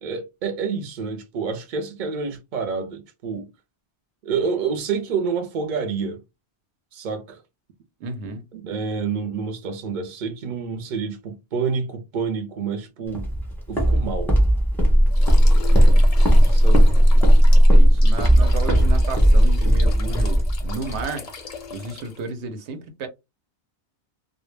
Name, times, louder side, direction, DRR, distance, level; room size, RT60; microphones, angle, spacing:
voice 1, 0.0-3.5 4.2-6.2 6.9-7.4 8.5-13.3 13.7-14.3 16.5-16.9, right 5 dB, 55° right, 0.7 m, -28 dB
voice 2, 8.0-8.4 15.8-16.1 16.7-21.3 21.7-23.1, right 3 dB, 90° right, 0.9 m, -33 dB
Walk footsteps, 13.1-21.0, equal, ahead, 0.6 m, -15 dB
sound 1, 15.1-22.3, left 4 dB, 50° left, 0.5 m, -39 dB
2.1 x 2.1 x 3.1 m
omnidirectional pair, 1.1 m